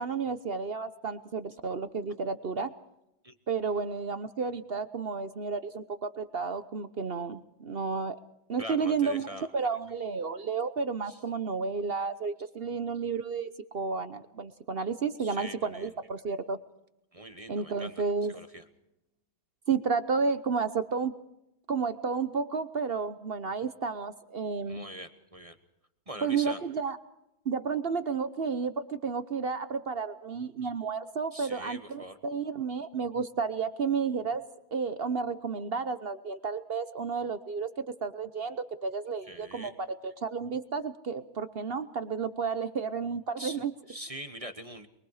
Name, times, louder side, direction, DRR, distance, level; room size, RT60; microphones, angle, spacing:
voice 1, 0.0-2.7 3.5-8.2 8.5-16.6 17.5-18.4 19.7-21.1 21.7-24.8 26.2-27.0 27.4-34.4 34.7-37.7 38.0-39.7 40.0-43.7, right 5 dB, 50° right, 11 dB, 0.7 m, -32 dB
voice 2, 8.6-9.5 11.1-11.2 15.2-15.9 17.1-17.9 18.3-18.6 24.7-25.6 26.1-26.6 31.3-32.2 39.3-39.7 43.4-43.6 43.9-44.9, equal, 20° right, 8 dB, 1.1 m, -42 dB
24.0 x 23.0 x 4.9 m, 0.87 s
omnidirectional pair, 2.1 m